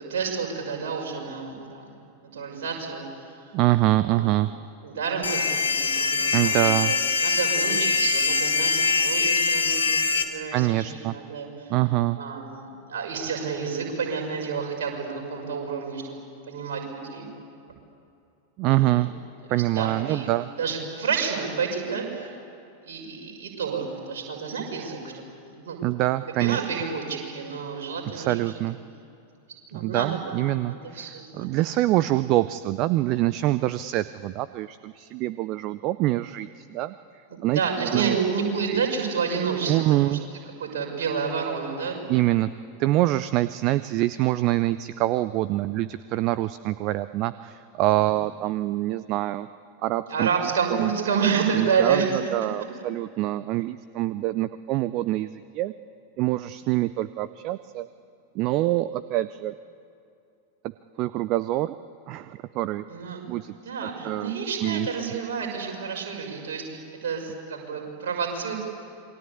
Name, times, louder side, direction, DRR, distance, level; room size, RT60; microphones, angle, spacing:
voice 1, 0.0-1.9 2.2-3.4 4.0-4.3 4.8-11.7 12.2-12.6 12.9-16.0 16.5-17.3 18.7-19.0 19.7-20.3 20.6-22.3 22.8-25.2 25.6-25.8 26.4-28.3 29.7-30.3 30.6-31.5 37.3-40.2 40.6-42.0 50.1-52.2 62.9-63.3 63.6-68.6, right 6 dB, 55° right, 0 dB, 6.1 m, -29 dB
voice 2, 3.5-4.5 6.3-6.9 10.5-11.2 11.7-12.2 18.6-19.1 19.5-20.5 25.8-26.6 28.1-28.8 29.7-36.9 37.4-38.2 38.7-38.8 39.7-40.2 42.1-42.5 42.8-49.5 49.8-50.3 50.7-50.9 51.5-55.7 56.2-57.9 58.3-59.5 61.0-61.8 62.1-62.8 63.3-63.5 63.8-64.3 64.6-64.9, right 16 dB, 40° right, 15 dB, 0.6 m, -25 dB
sound 1, 5.2-10.2, left 4 dB, 75° left, 2.1 m, -23 dB
27.5 x 22.5 x 8.5 m, 2.5 s
figure-of-eight pair, 90°, 0 cm